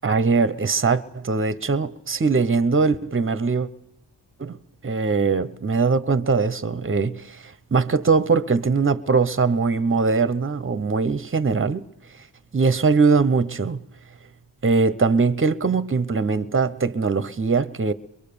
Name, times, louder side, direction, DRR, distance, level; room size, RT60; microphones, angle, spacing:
voice 1, 0.0-3.7 4.4-4.6 4.8-11.9 12.5-13.8 14.6-17.9, right 4 dB, 30° right, 1.0 m, -21 dB
23.0 x 22.5 x 7.0 m
cardioid pair, 70°, 44 cm